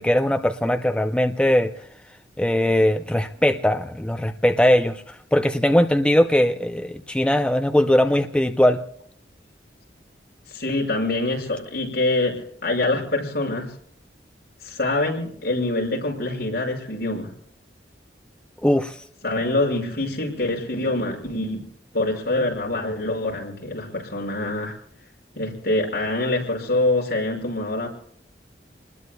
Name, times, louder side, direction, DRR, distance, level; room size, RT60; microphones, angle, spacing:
voice 1, 0.0-1.7 2.4-8.8 18.6-19.0, left 1 dB, 5° left, 6 dB, 0.5 m, -20 dB
voice 2, 10.5-13.7 14.6-17.3 19.2-21.6 21.9-24.8 25.4-27.9, left 2 dB, 60° left, 0 dB, 5.8 m, -25 dB
29.5 x 20.5 x 2.3 m, 0.66 s
head